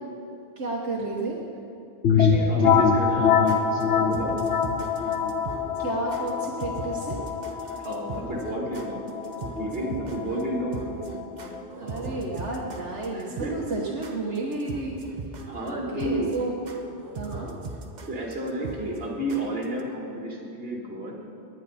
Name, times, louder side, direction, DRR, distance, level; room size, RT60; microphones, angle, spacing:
voice 1, 0.6-1.4 5.8-7.2 10.3-15.0 15.3-16.5 17.1-17.5, right 2 dB, 80° right, -3 dB, 1.6 m, -32 dB
sound 1, 2.0-11.6, left 6 dB, 75° left, 1.1 m, -25 dB
voice 2, 2.1-4.3 7.8-9.1 9.4-10.8 11.8-12.2 13.1-13.6 15.4-16.4 17.3-17.5 18.1-21.1, right 1 dB, 60° right, -2 dB, 2.3 m, -31 dB
sound 2, 3.2-19.8, right 3 dB, 45° right, 0.9 m, -40 dB
18.5 x 10.5 x 4.2 m, 2.6 s
omnidirectional pair, 1.2 m